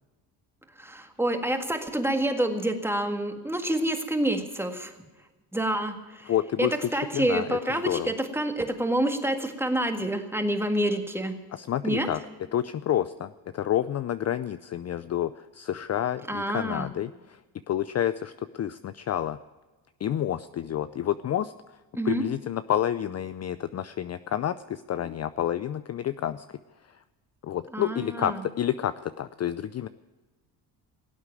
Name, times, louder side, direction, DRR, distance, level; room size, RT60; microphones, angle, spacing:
voice 1, 0.8-4.9 5.5-6.3 6.6-11.3 11.8-12.1 16.3-16.9 21.9-22.2 27.7-28.4, right 1 dB, 5° right, 6 dB, 1.8 m, -28 dB
voice 2, 6.3-8.1 11.5-12.2 12.5-17.4 17.7-19.4 20.0-21.5 22.0-26.5 27.4-29.9, left 11 dB, 35° left, 13 dB, 0.5 m, -29 dB
17.5 x 8.2 x 9.1 m, 1.2 s
cardioid pair, 95°, 43 cm